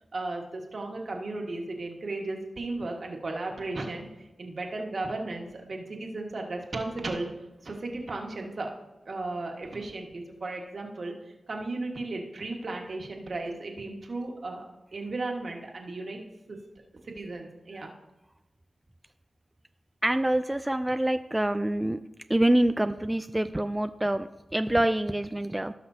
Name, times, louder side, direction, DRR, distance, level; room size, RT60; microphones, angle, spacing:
voice 1, 0.1-7.3 7.6-8.7 9.0-11.1 11.5-16.2 16.5-16.6 17.0-17.9, right 2 dB, 65° right, 1 dB, 1.7 m, -35 dB
voice 2, 20.0-22.0 22.3-25.7, right 1 dB, 15° right, 9 dB, 0.4 m, -26 dB
17.5 x 5.9 x 2.8 m, 0.97 s
cardioid pair, 45°, 0 cm